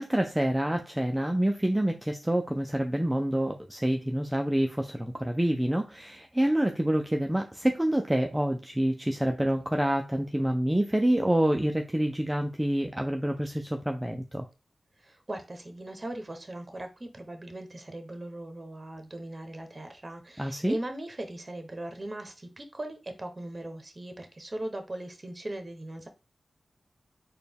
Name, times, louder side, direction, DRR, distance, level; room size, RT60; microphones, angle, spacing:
voice 1, 0.0-14.5 20.4-20.8, right 1 dB, 10° right, 4 dB, 0.4 m, -27 dB
voice 2, 15.0-26.1, right 1 dB, 35° right, 6 dB, 0.8 m, -39 dB
4.1 x 2.2 x 3.4 m, 0.29 s
cardioid pair, 55°, 0 cm